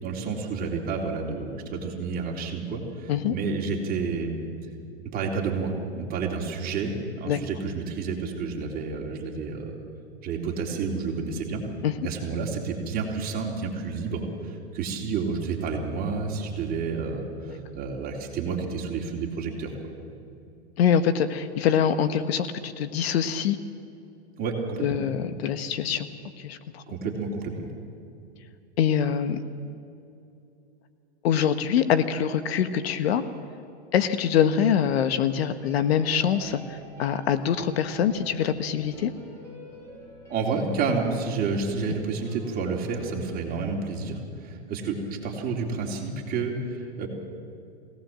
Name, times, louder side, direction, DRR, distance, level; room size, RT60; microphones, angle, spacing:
voice 1, 0.0-4.4 5.1-9.8 10.2-11.6 12.0-19.7 24.4-25.0 26.9-27.7 40.3-47.1, right 4 dB, 25° right, -1 dB, 3.6 m, -30 dB
voice 2, 20.8-23.6 24.8-26.1 26.4-26.8 28.8-29.4 31.2-33.2 33.9-39.1, left 8 dB, 65° left, 10 dB, 1.3 m, -24 dB
sound 1, 35.6-43.4, equal, 10° left, 5.8 m, -47 dB
23.0 x 17.5 x 7.6 m, 2.7 s
hypercardioid pair, 130°, 33 cm